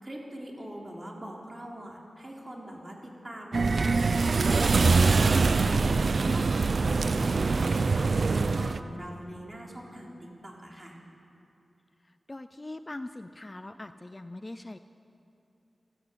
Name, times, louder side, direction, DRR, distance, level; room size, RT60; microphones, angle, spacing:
voice 1, 0.0-8.1 8.3-11.0, right 1 dB, 25° right, -1 dB, 3.7 m, -42 dB
sound 1, 3.5-8.8, right 4 dB, 60° right, 0.7 m, -24 dB
voice 2, 12.3-14.8, left 2 dB, 25° left, 10 dB, 0.5 m, -41 dB
26.0 x 13.5 x 8.2 m, 2.7 s
wide cardioid pair, 95°, 0 cm